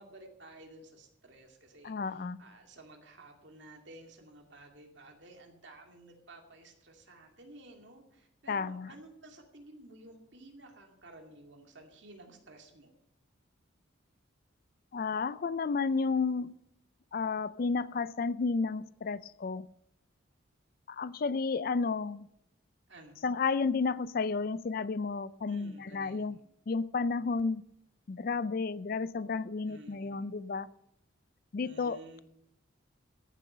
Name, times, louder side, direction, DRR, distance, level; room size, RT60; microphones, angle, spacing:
voice 1, 0.0-12.9 22.9-23.3 25.4-26.4 29.7-30.3 31.6-32.2, right 1 dB, 60° right, 3 dB, 2.4 m, -53 dB
voice 2, 1.8-2.4 8.5-8.9 14.9-16.5 17.1-19.6 20.9-22.3 23.2-26.4 26.7-27.6 28.1-30.7 31.5-32.0, left 4 dB, 45° left, 17 dB, 0.4 m, -32 dB
14.5 x 7.8 x 6.6 m, 0.75 s
head